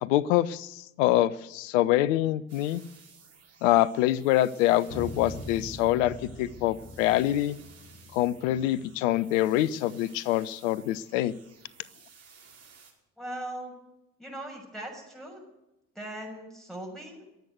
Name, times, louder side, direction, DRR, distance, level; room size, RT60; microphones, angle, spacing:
voice 1, 0.0-2.8 3.6-7.6 8.1-11.3, left 14 dB, 70° left, 21 dB, 0.7 m, -25 dB
sound 1, 2.5-12.9, right 5 dB, 40° right, 5.0 m, -55 dB
sound 2, 4.9-8.9, left 1 dB, 45° left, 4.4 m, -42 dB
voice 2, 13.2-13.7 14.2-15.4 15.9-17.2, right 1 dB, ahead, -2 dB, 6.4 m, -39 dB
22.5 x 8.0 x 8.0 m, 0.93 s
figure-of-eight pair, 55°, 39 cm